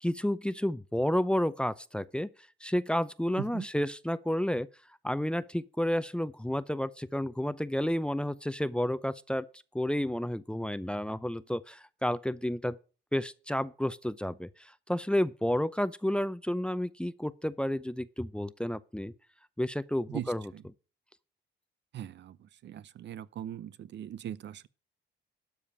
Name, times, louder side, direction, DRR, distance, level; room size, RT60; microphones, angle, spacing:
voice 1, 0.0-2.3 2.6-4.7 5.0-9.5 9.7-12.8 13.1-19.1 19.6-20.5, left 1 dB, 5° left, 0.6 m, -31 dB
voice 2, 21.9-22.4 22.6-24.7, right 11 dB, 60° right, 0.7 m, -40 dB
12.5 x 5.0 x 8.5 m
cardioid pair, 90°, 20 cm